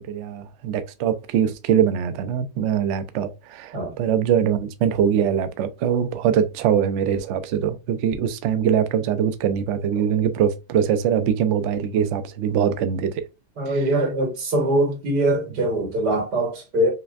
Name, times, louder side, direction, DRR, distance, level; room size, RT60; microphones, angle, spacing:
voice 1, 0.0-13.2 13.6-13.8, right 8 dB, 70° right, 0.7 m, -22 dB
voice 2, 13.6-16.9, right 1 dB, 90° right, 2.0 m, -22 dB
5.6 x 2.2 x 2.4 m
omnidirectional pair, 1.7 m